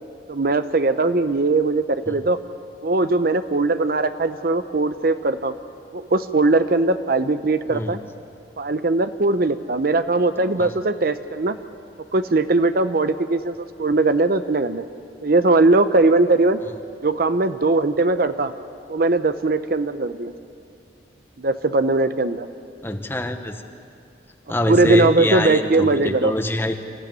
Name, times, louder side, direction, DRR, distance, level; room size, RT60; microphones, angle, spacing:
voice 1, 0.3-2.4 2.8-5.5 5.9-8.0 8.6-11.6 12.1-14.8 15.2-16.6 17.0-18.5 18.9-20.3 21.4-22.5 24.7-26.3, right 2 dB, 55° right, 11 dB, 0.8 m, -20 dB
voice 2, 22.8-23.6 24.5-26.8, left 1 dB, 15° left, 7 dB, 1.1 m, -25 dB
26.5 x 15.0 x 9.0 m, 2.4 s
head